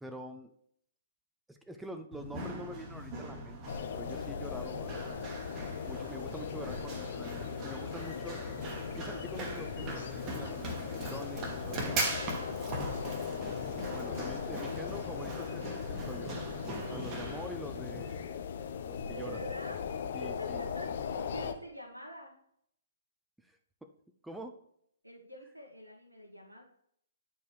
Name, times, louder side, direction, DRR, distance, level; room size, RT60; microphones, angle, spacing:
voice 1, 0.0-0.6 1.5-3.6 3.9-5.2 5.9-8.4 8.9-12.4 12.7-13.0 13.9-16.3 16.8-18.4 18.8-19.4 20.1-20.6 23.4-23.9 24.2-24.6, equal, 5° right, 6 dB, 0.5 m, -46 dB
Run, 2.1-18.2, right 1 dB, 25° right, 1.3 m, -40 dB
sound 1, 3.7-21.5, left 7 dB, 50° left, 0.6 m, -39 dB
voice 2, 12.2-12.6 13.0-13.2 19.1-22.4 25.0-26.6, equal, 90° right, 0 dB, 1.1 m, -46 dB
9.5 x 4.6 x 3.2 m, 0.69 s
figure-of-eight pair, 125°, 0 cm